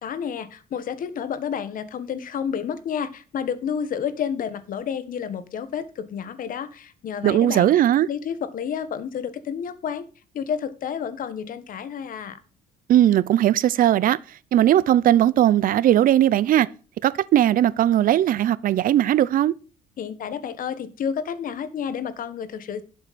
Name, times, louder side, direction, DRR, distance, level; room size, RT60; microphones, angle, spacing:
voice 1, 0.0-7.7 8.1-10.1 10.3-12.4 20.0-22.8, left 7 dB, 55° left, 1.5 m, -30 dB
voice 2, 7.2-8.1 12.9-14.2 14.5-16.7 17.0-19.5, right 12 dB, 55° right, 0.7 m, -18 dB
11.5 x 7.7 x 4.3 m
cardioid pair, 110°, 17 cm